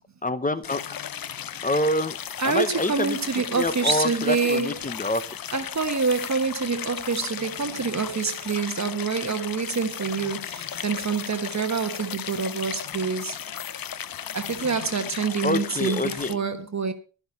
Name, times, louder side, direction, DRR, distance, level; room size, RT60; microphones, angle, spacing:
voice 1, 0.2-0.8 1.6-2.2 2.4-3.2 3.5-5.2 15.4-16.4, left 1 dB, 15° left, 1.0 m, -26 dB
Stream, 0.6-16.4, left 9 dB, 50° left, 0.7 m, -36 dB
sound 1, 0.8-14.8, left 7 dB, 75° left, 2.7 m, -48 dB
voice 2, 2.4-4.9 5.5-13.4 14.3-16.9, right 5 dB, 35° right, 1.3 m, -26 dB
11.5 x 11.5 x 5.4 m
wide cardioid pair, 120°, 47 cm